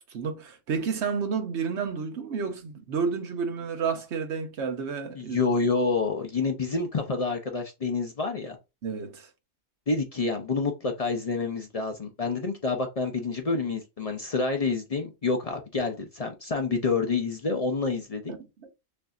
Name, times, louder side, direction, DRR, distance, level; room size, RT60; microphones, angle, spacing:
voice 1, 0.1-5.4 8.8-9.3 18.3-18.7, right 5 dB, 60° right, 1.1 m, -31 dB
voice 2, 5.2-8.6 9.9-18.3, left 4 dB, 55° left, 0.4 m, -28 dB
6.5 x 2.6 x 2.4 m
omnidirectional pair, 1.4 m